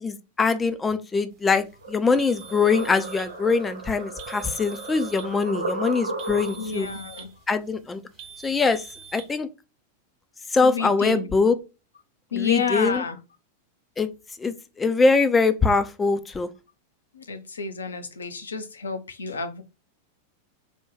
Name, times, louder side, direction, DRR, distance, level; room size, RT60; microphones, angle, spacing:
voice 1, 0.0-6.9 7.5-8.0 8.4-8.8 9.1-9.5 10.5-11.6 12.3-13.0 14.0-14.1 14.4-16.5, left 4 dB, 15° left, 0.4 m, -23 dB
sound 1, 1.8-6.9, right 2 dB, 75° right, 0.7 m, -34 dB
sound 2, 2.2-3.3 4.2-5.3 6.2-7.3 8.2-9.3, right 6 dB, 40° right, 0.9 m, -44 dB
voice 2, 6.6-7.3 10.6-11.3 12.3-13.2 17.1-19.6, left 5 dB, 70° left, 0.6 m, -30 dB
3.4 x 2.2 x 3.1 m
figure-of-eight pair, 90°, 0 cm